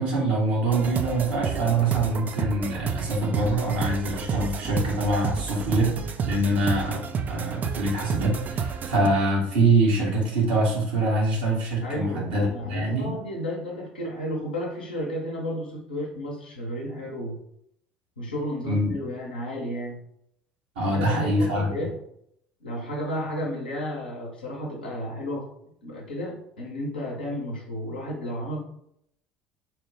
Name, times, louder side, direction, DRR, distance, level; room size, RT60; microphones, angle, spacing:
voice 1, 0.0-6.0 6.2-7.0 7.3-13.1 18.7-18.9 20.7-21.7, right 2 dB, 75° right, -4 dB, 1.3 m, -24 dB
sound 1, 0.7-9.1, right 6 dB, 35° right, 0.3 m, -30 dB
voice 2, 11.8-17.4 18.2-20.0 20.8-22.0 22.6-25.5 25.8-28.6, equal, 85° left, -2 dB, 0.9 m, -32 dB
3.0 x 2.2 x 3.3 m, 0.73 s
figure-of-eight pair, 65°, 5 cm